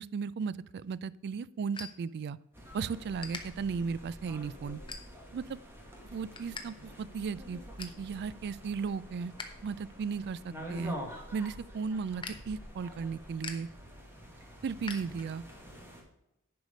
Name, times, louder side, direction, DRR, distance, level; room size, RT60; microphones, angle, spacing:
voice 1, 0.0-2.4 2.7-4.8 5.3-5.4 6.0-9.3 9.6-11.0 11.3-13.7 14.6-15.4, right 5 dB, 50° right, 19 dB, 0.3 m, -36 dB
sound 1, 0.6-2.7 3.0-3.4 4.0-4.2 4.7-5.4 5.8-6.7 6.9-7.0 7.4-8.0 8.5-9.5 9.8-15.6, left 4 dB, 20° left, 0.9 m, -46 dB
sound 2, 2.5-16.0, equal, 10° right, 1.6 m, -47 dB
10.5 x 4.8 x 5.2 m, 0.87 s
head